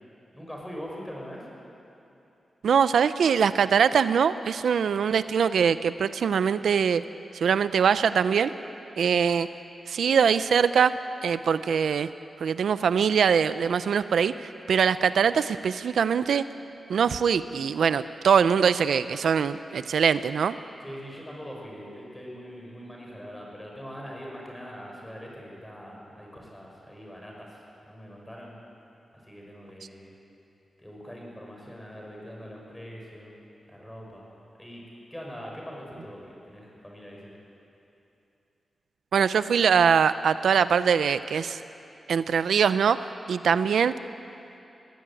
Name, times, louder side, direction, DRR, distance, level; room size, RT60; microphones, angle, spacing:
voice 1, 0.3-1.4 20.8-28.5 29.2-30.1 30.8-33.4 33.7-34.2 34.5-34.8 35.1-37.3, equal, 10° left, -2 dB, 6.3 m, -42 dB
voice 2, 2.6-7.0 7.4-8.5 9.0-9.5 9.9-11.0 11.2-12.1 12.4-16.4 16.9-20.6 39.1-41.6 42.1-43.0 43.3-43.9, right 7 dB, 90° right, 13 dB, 0.5 m, -22 dB
22.0 x 17.0 x 9.1 m, 2.8 s
wide cardioid pair, 100°, 0 cm